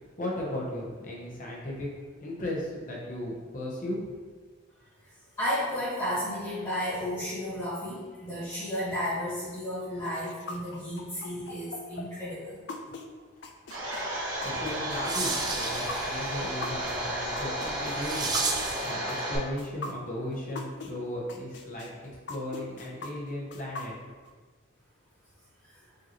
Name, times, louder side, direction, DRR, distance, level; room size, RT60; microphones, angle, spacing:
voice 1, 0.2-1.9 2.2-4.1 14.4-18.4 18.8-21.9 22.3-23.9, left 1 dB, 40° left, -3 dB, 0.9 m, -36 dB
voice 2, 5.4-12.6 25.6-25.8, equal, 20° left, -11 dB, 1.5 m, -33 dB
sound 1, 10.0-20.9 21.3-24.3, left 3 dB, 60° left, 0.4 m, -41 dB
Domestic sounds home sounds, 13.7-19.4, right 1 dB, 90° right, 1.1 m, -33 dB
sound 2, 14.5-18.9, right 3 dB, 20° right, 0.3 m, -34 dB
5.0 x 2.8 x 2.9 m, 1.4 s
head